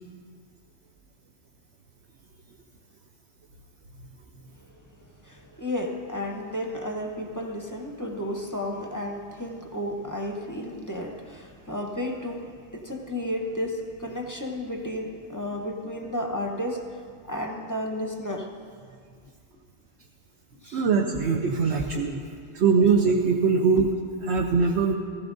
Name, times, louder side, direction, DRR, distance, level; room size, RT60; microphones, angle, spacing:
voice 1, 5.0-18.5 20.6-20.9, left 1 dB, 20° left, 1 dB, 0.7 m, -33 dB
voice 2, 20.7-22.2 22.5-23.9 24.3-24.9, right 5 dB, 70° right, 2 dB, 1.0 m, -22 dB
15.5 x 15.0 x 2.6 m, 2.2 s
omnidirectional pair, 1.2 m